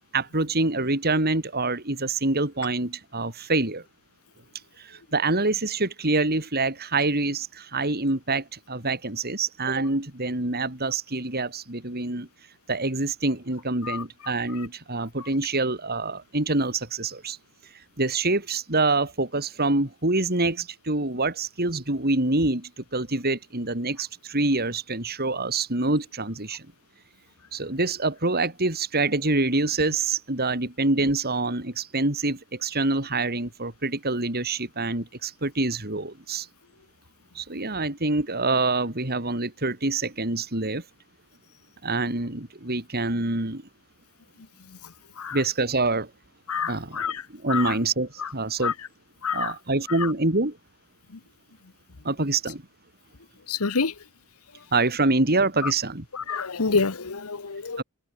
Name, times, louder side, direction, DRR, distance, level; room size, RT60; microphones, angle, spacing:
voice 1, 0.1-3.8 4.8-12.3 12.7-17.4 18.0-26.7 27.5-36.5 37.3-40.8 41.8-43.6 45.3-46.1 46.7-48.7 49.3-50.6 52.0-52.6 54.7-56.1 57.8-57.9, right 2 dB, 45° right, 4.0 m, -26 dB
voice 2, 46.5-47.2 47.5-47.7 48.2-48.3 48.6-48.7 49.2-49.5 53.5-53.9 55.6-55.7 56.1-57.8, left 5 dB, 90° left, 1.2 m, -27 dB
open air
head